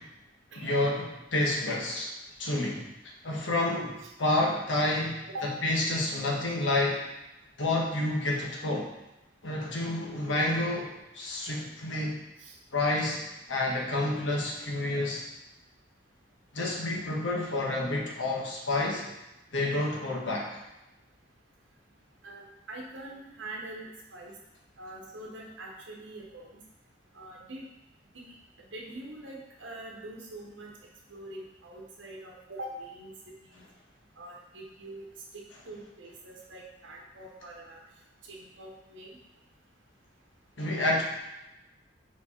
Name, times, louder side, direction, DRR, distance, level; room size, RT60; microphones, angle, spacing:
voice 1, 0.5-2.1 2.4-2.9 3.2-7.0 7.6-8.9 9.4-12.2 12.7-15.3 16.5-19.1 19.5-20.6 40.6-41.0, left 2 dB, 80° left, -2 dB, 1.3 m, -29 dB
voice 2, 22.2-24.3 24.8-26.6 27.1-27.6 28.1-30.7 31.1-33.6 34.2-35.1 35.3-37.8 38.2-39.2, right 1 dB, 80° right, -2 dB, 0.9 m, -44 dB
4.8 x 4.7 x 4.2 m, 0.97 s
head